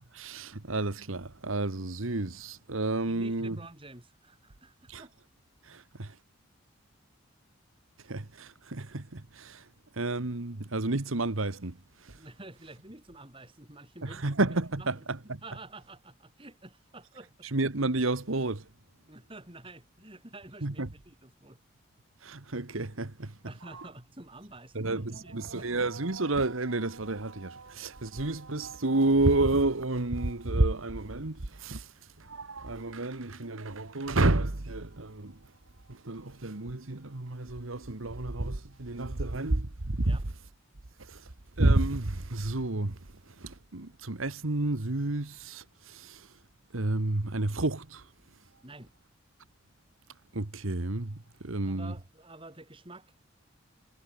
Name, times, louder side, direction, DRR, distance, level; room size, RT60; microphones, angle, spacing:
voice 1, 0.1-3.6 4.9-5.0 5.6-6.2 8.0-12.2 14.0-15.4 17.4-18.7 20.6-20.9 22.2-23.4 23.6-23.9 24.7-35.5 35.9-40.2 41.0-46.4 46.7-48.1 50.3-51.9, right 2 dB, 80° right, 1.5 m, -31 dB
voice 2, 3.1-5.1 12.2-14.3 14.8-14.9 15.4-17.5 19.1-21.6 23.5-25.7 40.0-40.2 48.6-48.9 51.6-53.2, right 2 dB, 25° right, 3.5 m, -49 dB
head